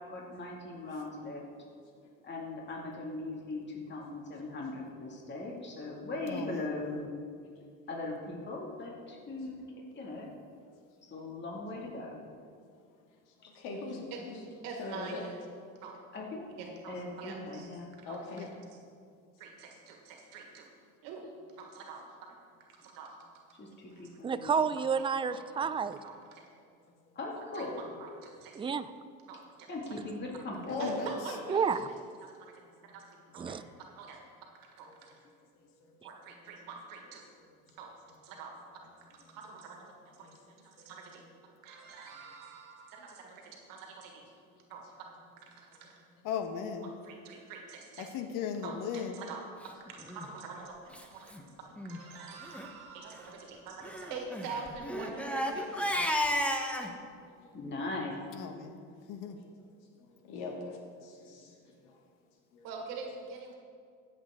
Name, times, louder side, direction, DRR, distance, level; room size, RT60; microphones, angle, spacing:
voice 1, 0.0-1.4 2.2-7.1 7.9-9.6 10.0-10.3 11.0-12.2 13.4-13.5 16.1-16.4 16.9-17.9 23.6-24.7 27.1-27.9 29.7-30.9 57.5-58.3, left 2 dB, 30° left, -2 dB, 2.3 m, -39 dB
voice 2, 6.3-6.7 13.9-14.0 18.4-18.5 30.8-31.1 46.2-46.9 48.0-49.2 58.3-58.8 59.0-59.4, left 7 dB, 65° left, 7 dB, 1.2 m, -37 dB
voice 3, 13.5-14.4 14.8-15.2 18.0-18.4 26.9-27.0 30.6-31.1 34.8-35.0 35.6-35.9 40.2-40.3 40.8-40.9 51.5-51.6 56.9-57.5 60.0-61.6 61.8-62.0 62.5-62.7, left 3 dB, 80° left, 0 dB, 2.3 m, -41 dB
voice 4, 14.6-15.4 15.8-16.0 16.6-17.7 18.1-18.5 19.4-20.7 21.0-21.3 21.6-22.4 22.7-23.1 24.0-24.1 25.3-25.4 26.0-26.5 27.4-27.7 28.0-28.6 29.3-29.9 30.8-31.8 32.2-32.5 32.9-33.1 33.3-33.6 34.0-34.2 34.8-35.2 36.0-37.2 37.8-37.9 38.2-38.5 39.1-40.3 40.6-41.2 41.6-44.3 44.7-44.8 45.4-46.0 47.0-48.1 48.6-55.9 62.6-63.6, right 4 dB, 75° right, 1 dB, 1.7 m, -45 dB
voice 5, 24.2-26.0 28.6-28.9 31.5-31.8 33.4-33.6, right 6 dB, 15° right, 12 dB, 0.4 m, -30 dB
Crying sobbing, 50.0-50.3 50.9-51.0 51.3-51.4 51.8-52.0 52.4-52.7 53.8-56.9, equal, 5° left, 1.0 m, -33 dB
15.5 x 7.6 x 3.7 m, 2.2 s
supercardioid pair, 95°, 34 cm